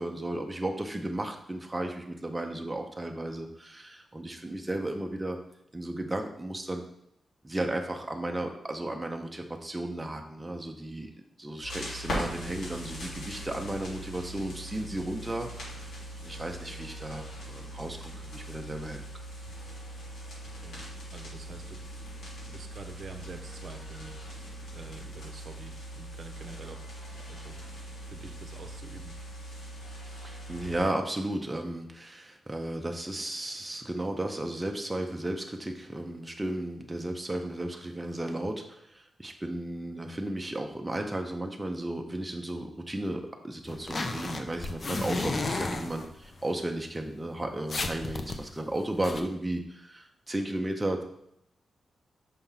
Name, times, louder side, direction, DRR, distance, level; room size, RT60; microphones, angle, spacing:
voice 1, 0.0-5.4 5.7-6.8 7.4-11.1 11.4-15.5 15.7-19.0 30.2-51.0, right 1 dB, 10° right, 3 dB, 0.6 m, -34 dB
sound 1, 11.6-30.9, equal, 85° left, 2.5 m, -41 dB
voice 2, 20.5-20.9 21.1-21.8 22.5-24.1 24.7-26.8 27.3-27.6 28.1-29.1, right 3 dB, 55° right, 5 dB, 0.7 m, -46 dB
sound 2, 43.7-46.4 47.0-47.1 47.3-47.4 47.7-49.2, left 3 dB, 35° left, 0.5 m, -33 dB
5.7 x 3.5 x 5.5 m, 0.76 s
wide cardioid pair, 135°, 0 cm